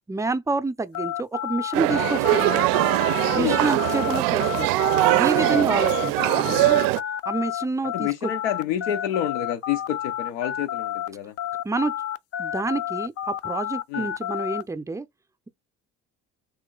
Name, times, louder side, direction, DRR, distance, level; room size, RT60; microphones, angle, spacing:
voice 1, 0.1-2.5 3.3-4.7 5.1-6.8 7.3-8.3 11.6-11.9 12.4-15.1, right 3 dB, 10° right, 0.5 m, -28 dB
sound 1, 0.9-11.1 11.4-14.6, left 11 dB, 45° left, 0.5 m, -30 dB
sound 2, 1.7-7.0, right 17 dB, 70° right, 0.5 m, -21 dB
voice 2, 7.8-11.3 13.9-14.1, left 10 dB, 85° left, 0.6 m, -29 dB
3.2 x 2.9 x 3.7 m
hypercardioid pair, 60°, 36 cm